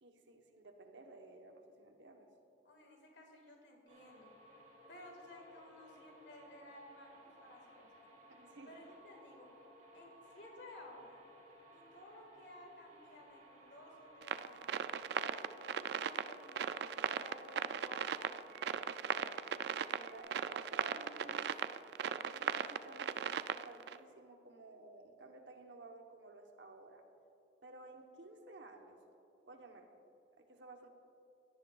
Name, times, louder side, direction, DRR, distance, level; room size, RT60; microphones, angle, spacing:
voice 1, 0.0-2.3 8.3-8.8 19.8-21.5 22.1-27.0 27.6-29.0 29.5-29.9 30.4-30.9, right 2 dB, 80° right, 4 dB, 1.0 m, -55 dB
voice 2, 2.6-4.3 4.9-7.9 8.7-9.5 9.9-11.2 11.7-14.8 15.2-18.9, left 1 dB, 75° left, 1 dB, 1.9 m, -56 dB
sound 1, 3.9-20.2, right 1 dB, 40° right, 2.6 m, -60 dB
sound 2, 14.2-24.0, right 7 dB, 65° right, 0.3 m, -38 dB
17.0 x 12.5 x 2.4 m, 2.8 s
head